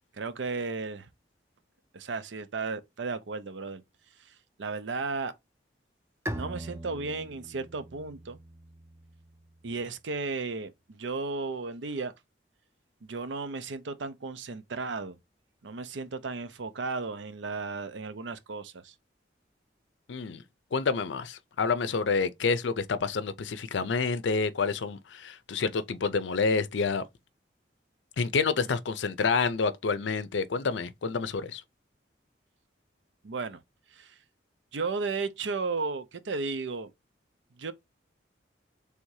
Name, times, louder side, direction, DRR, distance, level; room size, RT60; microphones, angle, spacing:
voice 1, 0.1-1.1 1.9-3.8 4.2-5.3 6.3-8.4 9.6-12.1 13.0-15.2 15.6-18.9 33.2-33.6 33.9-34.2 34.7-36.9 37.6-37.7, right 4 dB, 85° right, 0.6 m, -34 dB
Bowed string instrument, 6.3-9.7, right 1 dB, 15° right, 0.5 m, -41 dB
voice 2, 20.1-20.4 20.7-27.0 28.2-31.6, left 4 dB, 80° left, 0.5 m, -28 dB
3.4 x 2.7 x 4.6 m
head